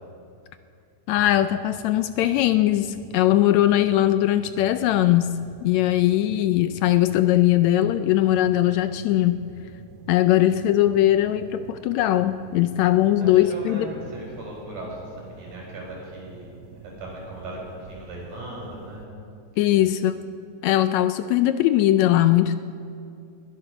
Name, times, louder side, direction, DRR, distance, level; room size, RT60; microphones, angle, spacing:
voice 1, 1.1-5.3 5.6-9.4 10.1-13.9 19.6-20.1 20.6-22.6, left 13 dB, 80° left, 11 dB, 1.7 m, -20 dB
sound 1, 1.2-19.0, right 5 dB, 70° right, 1.6 m, -47 dB
voice 2, 13.2-16.6 16.8-19.1 19.7-19.9, right 1 dB, 85° right, -3 dB, 6.8 m, -38 dB
20.5 x 11.5 x 6.0 m, 2.4 s
omnidirectional pair, 3.5 m